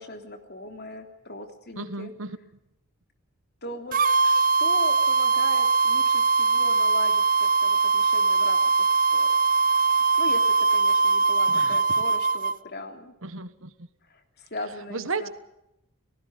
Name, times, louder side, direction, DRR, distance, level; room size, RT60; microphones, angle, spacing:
voice 1, 0.0-2.1 3.6-4.0 4.2-9.3 10.2-10.4 10.7-13.1 14.1-15.3, left 2 dB, 45° left, 5 dB, 3.3 m, -39 dB
voice 2, 1.8-2.4 11.5-11.8 13.2-13.9 14.9-15.3, right 3 dB, 60° right, 12 dB, 1.3 m, -34 dB
sound 1, 3.9-12.5, right 4 dB, 40° right, 0.8 m, -21 dB
30.0 x 19.5 x 5.3 m, 0.84 s
head